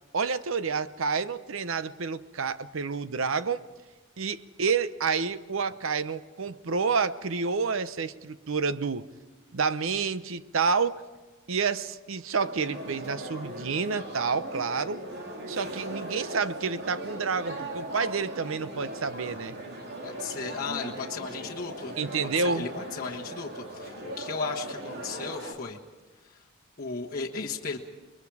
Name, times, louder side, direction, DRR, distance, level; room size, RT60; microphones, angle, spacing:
voice 1, 0.1-3.6 4.2-9.1 9.5-11.0 11.5-15.0 15.5-19.6 22.0-22.7, right 5 dB, 65° right, 14 dB, 0.7 m, -29 dB
sound 1, 12.4-25.5, right 1 dB, 50° right, 2.8 m, -39 dB
voice 2, 20.0-21.9 22.3-25.8 26.2-26.4 26.8-27.8, left 5 dB, 40° left, -4 dB, 1.5 m, -35 dB
30.0 x 22.0 x 4.9 m, 1.2 s
head